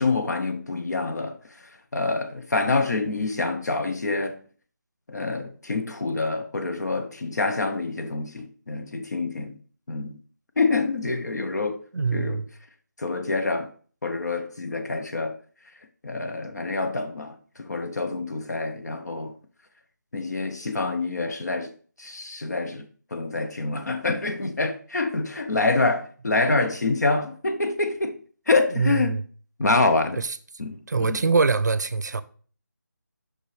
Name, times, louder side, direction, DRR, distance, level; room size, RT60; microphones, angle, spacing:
voice 1, 0.0-1.4 1.9-4.4 5.1-9.6 9.9-10.2 10.6-11.8 12.1-12.4 13.0-13.7 14.0-15.4 16.0-19.3 20.1-21.7 22.0-22.8 23.1-28.2 28.5-29.2 29.6-30.2 30.6-31.2, left 3 dB, 60° left, 0.7 m, -26 dB
voice 2, 11.9-12.5 28.8-29.2 30.2-30.4 30.9-32.2, right 4 dB, 65° right, 0.5 m, -23 dB
6.1 x 5.3 x 3.2 m
figure-of-eight pair, 170°, 10 cm